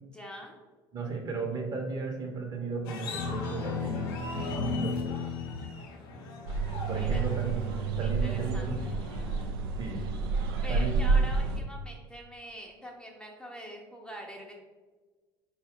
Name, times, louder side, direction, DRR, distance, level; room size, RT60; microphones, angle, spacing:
voice 1, 0.1-0.6 7.0-7.3 8.0-9.0 10.6-14.5, equal, 5° left, -1 dB, 0.6 m, -44 dB
voice 2, 0.9-5.2 6.9-8.8 9.8-10.2 10.7-11.0, right 3 dB, 35° right, 2 dB, 0.9 m, -35 dB
sound 1, 2.8-9.5, left 4 dB, 65° left, 0.6 m, -36 dB
sound 2, 6.5-11.6, right 4 dB, 70° right, 0.4 m, -29 dB
4.2 x 2.3 x 3.6 m, 1.3 s
figure-of-eight pair, 60°, 12 cm